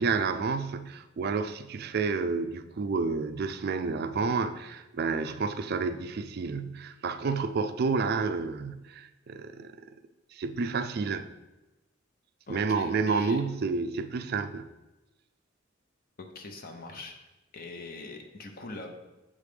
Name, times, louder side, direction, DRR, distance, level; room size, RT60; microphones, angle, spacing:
voice 1, 0.0-9.7 10.3-11.3 12.5-14.7, right 4 dB, 50° right, 10 dB, 0.4 m, -30 dB
voice 2, 12.5-13.4 16.2-17.2 17.5-18.9, left 3 dB, 45° left, 4 dB, 0.8 m, -42 dB
7.5 x 3.2 x 5.1 m, 1.1 s
head